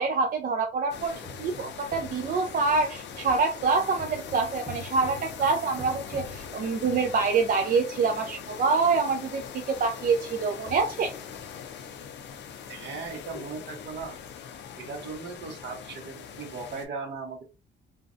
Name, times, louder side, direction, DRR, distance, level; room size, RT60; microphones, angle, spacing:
voice 1, 0.0-11.1, right 4 dB, 45° right, 3 dB, 0.4 m, -26 dB
sound 1, 0.9-16.9, left 7 dB, 65° left, 0.5 m, -42 dB
sound 2, 1.2-7.7 8.4-8.5 8.8-9.0 9.4-9.5 10.1-10.2 10.4-10.8, right 1 dB, 15° right, 1.1 m, -46 dB
voice 2, 12.7-14.2 14.8-17.4, right 4 dB, 65° right, 4 dB, 0.8 m, -38 dB
2.5 x 2.1 x 2.5 m, 0.31 s
cardioid pair, 90°, 20 cm